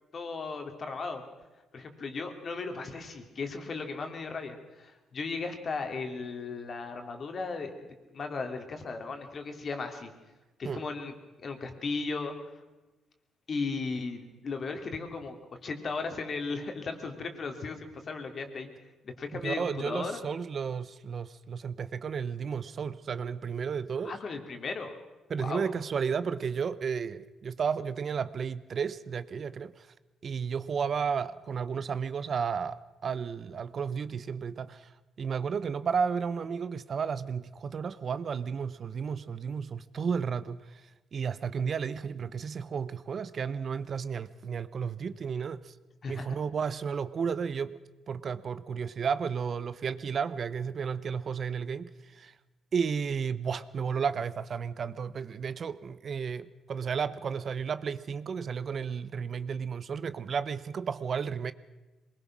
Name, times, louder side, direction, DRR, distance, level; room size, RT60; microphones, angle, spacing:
voice 1, 0.1-1.2 1.7-10.1 10.6-11.1 11.4-12.3 13.5-15.4 15.6-18.7 19.0-20.2 24.0-25.0 25.4-25.7 46.0-46.3, left 4 dB, 45° left, 2.9 m, -36 dB
voice 2, 19.3-24.1 25.3-29.9 30.2-34.9 35.2-45.7 46.1-47.8 48.1-52.3 52.7-61.5, right 6 dB, 50° right, 0.8 m, -33 dB
23.0 x 20.5 x 6.2 m
cardioid pair, 90°, 0 cm